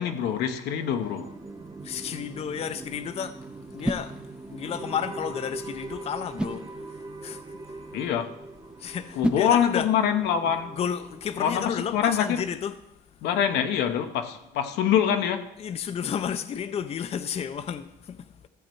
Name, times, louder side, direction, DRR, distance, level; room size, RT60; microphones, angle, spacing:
voice 1, 0.0-1.3 7.9-8.4 9.2-10.7 11.4-12.2 13.2-15.5, left 9 dB, 85° left, 0.9 m, -25 dB
sound 1, 1.0-10.3, right 1 dB, 5° right, 0.6 m, -38 dB
sound 2, 1.2-12.0, right 2 dB, 20° right, 1.0 m, -42 dB
voice 2, 1.8-3.4 3.7-4.2 4.5-7.8 8.8-9.9 10.5-12.8 15.6-18.5, left 8 dB, 35° left, 0.5 m, -32 dB
14.0 x 7.4 x 4.5 m
cardioid pair, 110°, 17 cm